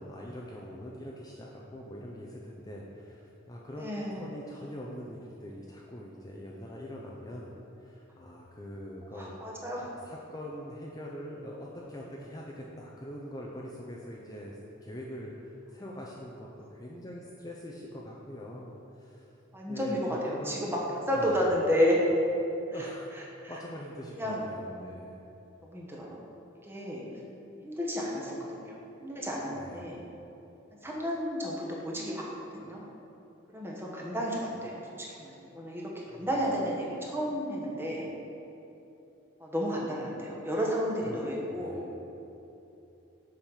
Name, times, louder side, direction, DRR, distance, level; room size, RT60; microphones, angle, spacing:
voice 1, 0.0-19.3 19.7-20.7 21.2-21.4 22.7-25.3 29.5-30.1 36.1-36.3 41.0-41.2 41.5-42.0, equal, 20° left, -3 dB, 0.5 m, -43 dB
voice 2, 3.8-4.3 9.1-9.9 19.5-20.8 21.1-22.0 24.2-24.9 25.7-26.2 26.7-27.0 27.6-28.7 29.0-30.0 30.8-32.2 32.5-32.8 33.5-34.8 35.2-38.1 39.4-41.8, equal, 10° right, -3 dB, 1.1 m, -31 dB
7.3 x 5.2 x 5.6 m, 2.9 s
head